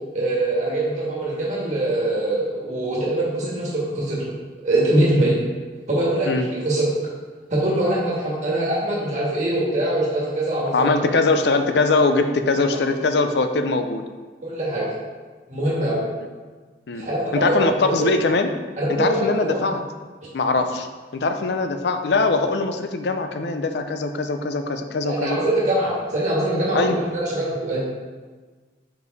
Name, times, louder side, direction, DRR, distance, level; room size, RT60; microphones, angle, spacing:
voice 1, 0.1-4.3 4.6-5.3 5.9-6.9 7.5-11.0 14.4-14.9 15.5-16.0 16.9-17.7 17.9-18.1 18.8-19.6 25.0-27.8, right 1 dB, 40° right, -6 dB, 1.7 m, -23 dB
voice 2, 10.7-14.0 16.9-18.5 18.9-19.8 20.3-20.9 21.1-25.4 26.7-27.0, left 3 dB, 75° left, 7 dB, 0.5 m, -22 dB
5.1 x 4.7 x 4.1 m, 1.4 s
head